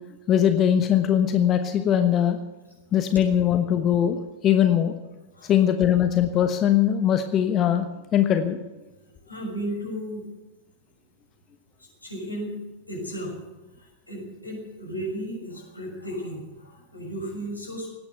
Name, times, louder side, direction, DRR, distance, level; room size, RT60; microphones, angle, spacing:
voice 1, 0.3-2.4 2.9-4.2 4.4-4.9 5.4-8.6, left 10 dB, 30° left, 7 dB, 1.1 m, -21 dB
voice 2, 9.0-10.3 11.8-12.6 12.9-13.4 13.8-17.9, equal, 85° left, -2 dB, 6.2 m, -34 dB
18.0 x 9.5 x 7.9 m, 1.1 s
figure-of-eight pair, 90°, 0 cm